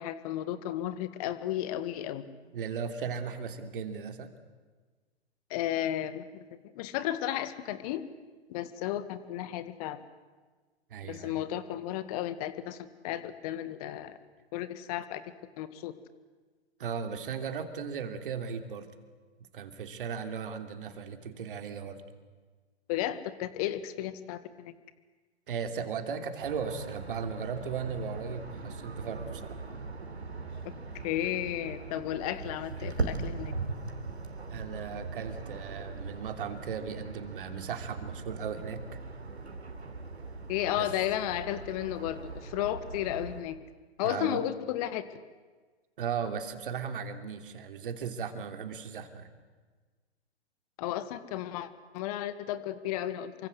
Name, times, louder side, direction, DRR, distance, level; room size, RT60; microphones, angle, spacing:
voice 1, 0.0-2.2 5.5-6.4 6.8-8.0 8.5-10.0 11.0-14.2 14.5-15.2 15.6-15.9 22.9-24.7 31.0-33.5 40.5-43.6 44.0-45.0 50.8-53.5, left 12 dB, 35° left, 13 dB, 1.9 m, -33 dB
voice 2, 2.5-4.3 10.9-11.4 16.8-18.9 19.5-22.0 25.5-29.6 34.5-39.0 40.8-40.9 44.0-44.4 46.0-49.3, right 6 dB, 50° right, 7 dB, 3.1 m, -36 dB
sound 1, 26.4-43.4, right 3 dB, 75° right, 3.4 m, -40 dB
28.0 x 24.5 x 7.9 m, 1.4 s
figure-of-eight pair, 115°, 33 cm